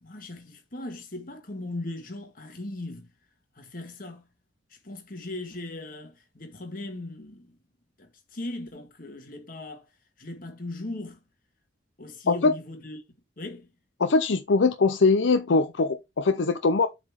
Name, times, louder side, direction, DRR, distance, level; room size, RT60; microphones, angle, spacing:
voice 1, 0.0-3.1 3.6-4.2 4.7-7.6 8.0-9.8 10.2-11.2 12.0-13.0 13.4-13.7, left 2 dB, 45° left, 1.8 m, -38 dB
voice 2, 14.0-16.9, left 3 dB, 75° left, 0.6 m, -22 dB
7.4 x 4.1 x 4.5 m
head